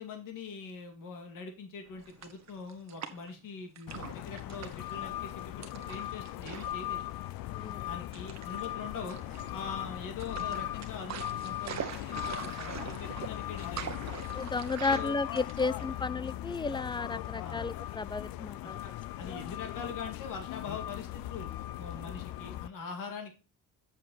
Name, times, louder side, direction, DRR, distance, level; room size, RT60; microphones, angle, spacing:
voice 1, 0.0-7.0 7.8-9.2 9.5-14.2 14.9-15.2 17.4-17.7 18.6-18.9 19.2-21.5 21.8-23.3, left 5 dB, 70° left, 2.4 m, -43 dB
sound 1, 1.8-4.6 8.7-14.9 16.2-18.6, left 3 dB, 40° left, 5.3 m, -61 dB
sound 2, 2.0-3.4 3.8-4.9 5.6-6.8 7.1-7.3 8.1-8.6 9.1-9.7 10.2-16.1, right 8 dB, 50° right, 1.3 m, -43 dB
sound 3, 3.9-22.7, left 13 dB, 85° left, 0.5 m, -39 dB
voice 2, 7.5-7.9 14.3-18.8, left 3 dB, 15° left, 0.3 m, -33 dB
7.6 x 7.6 x 4.0 m
cardioid pair, 115°, 34 cm